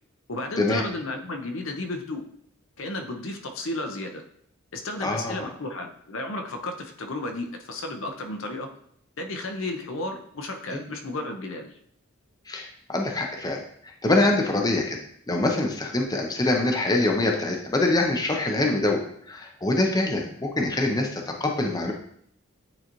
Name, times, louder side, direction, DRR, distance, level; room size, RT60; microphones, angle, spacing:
voice 1, 0.3-2.2 2.8-4.2 4.7-8.7 9.2-11.7, left 2 dB, 65° left, 4 dB, 0.8 m, -33 dB
voice 2, 5.0-5.5 10.7-10.8 12.5-15.0 15.3-19.0 19.3-21.9, left 2 dB, 20° left, 1 dB, 0.6 m, -24 dB
8.8 x 4.0 x 3.0 m, 0.66 s
head